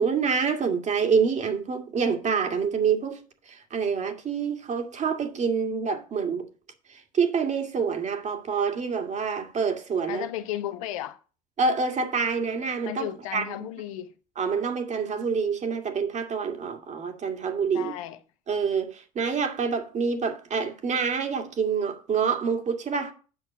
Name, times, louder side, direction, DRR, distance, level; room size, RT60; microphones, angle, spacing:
voice 1, 0.0-6.5 6.9-10.2 11.6-13.5 14.4-17.9 18.5-23.1, right 5 dB, 45° right, 2.1 m, -27 dB
voice 2, 10.1-11.2 12.9-14.1 17.7-18.2, left 12 dB, 90° left, 0.9 m, -34 dB
8.0 x 5.9 x 7.2 m
hypercardioid pair, 75°, 17 cm